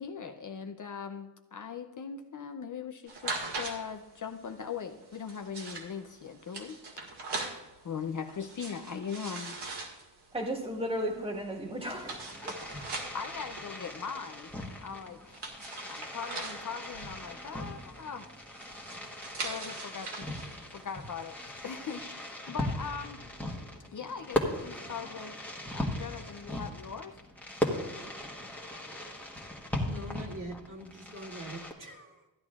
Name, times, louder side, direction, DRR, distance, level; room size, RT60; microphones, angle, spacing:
voice 1, 0.0-6.8 7.8-9.6 11.8-12.0 12.8-15.6 15.9-18.3 19.4-20.3 20.7-21.4 21.6-23.2 23.9-27.2, left 6 dB, 45° left, 6 dB, 0.6 m, -40 dB
sound 1, 3.1-22.0, right 3 dB, 65° right, 2.0 m, -43 dB
voice 2, 10.3-12.2 12.4-12.8, equal, 15° right, 0 dB, 1.7 m, -35 dB
Fireworks, 11.9-31.7, left 1 dB, 5° left, 1.3 m, -38 dB
voice 3, 29.9-32.3, right 1 dB, 45° right, -1 dB, 1.9 m, -43 dB
15.0 x 11.0 x 2.4 m, 1.1 s
wide cardioid pair, 160°, 44 cm